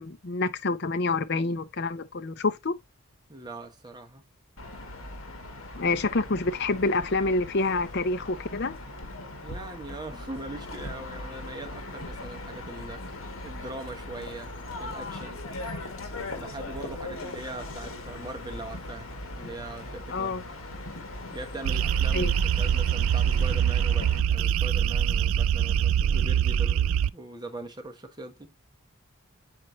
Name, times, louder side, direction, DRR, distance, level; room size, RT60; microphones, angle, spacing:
voice 1, 0.0-2.8 5.7-8.8 20.1-20.4 22.1-22.3, left 3 dB, 50° left, 0.7 m, -27 dB
voice 2, 3.3-4.2 5.8-6.0 9.4-13.0 13.4-14.5 14.8-15.4 16.3-19.1 19.4-20.5 21.3-28.5, right 2 dB, 20° right, 1.1 m, -41 dB
sound 1, 4.6-24.2, left 2 dB, 70° left, 1.9 m, -39 dB
sound 2, 21.6-27.1, right 9 dB, 70° right, 0.3 m, -24 dB
9.1 x 4.3 x 2.8 m
head